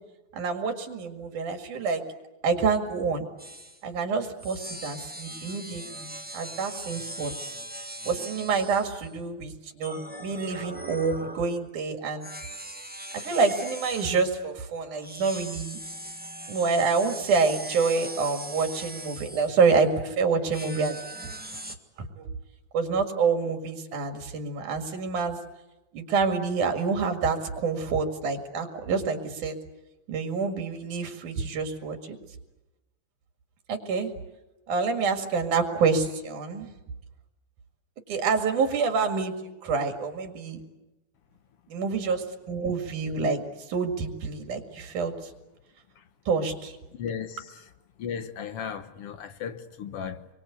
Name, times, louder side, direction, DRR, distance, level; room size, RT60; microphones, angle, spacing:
voice 1, 0.3-2.0 2.4-3.3 3.8-7.3 8.0-12.3 13.1-15.8 16.5-21.0 22.1-22.3 22.7-25.4 25.9-29.6 30.1-32.2 33.7-34.1 34.7-36.7 38.1-39.3 39.6-40.6 41.7-43.4 43.7-45.1 46.3-46.8, right 4 dB, 85° right, 3.7 m, -27 dB
sound 1, 3.4-3.8 4.4-9.1 9.8-11.6 12.2-14.4 15.0-19.9 20.5-21.7, right 1 dB, 10° right, 0.4 m, -40 dB
voice 2, 46.9-47.7 48.0-50.3, left 7 dB, 60° left, 1.8 m, -36 dB
28.0 x 23.5 x 8.3 m
omnidirectional pair, 3.5 m